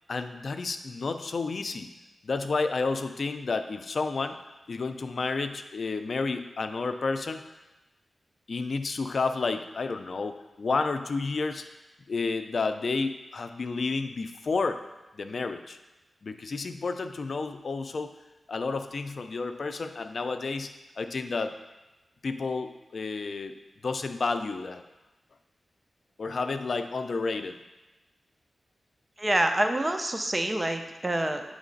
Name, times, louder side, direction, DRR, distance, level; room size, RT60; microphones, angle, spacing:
voice 1, 0.1-1.9 2.2-4.4 4.7-7.4 8.5-11.6 12.1-14.8 15.2-15.8 16.2-18.1 18.5-20.7 21.0-21.6 22.2-23.6 23.8-24.8 26.2-27.6, left 4 dB, 65° left, 8 dB, 0.4 m, -31 dB
voice 2, 29.2-31.4, right 1 dB, 20° right, 6 dB, 0.6 m, -26 dB
8.1 x 3.2 x 3.9 m, 1.1 s
cardioid pair, 65°, 0 cm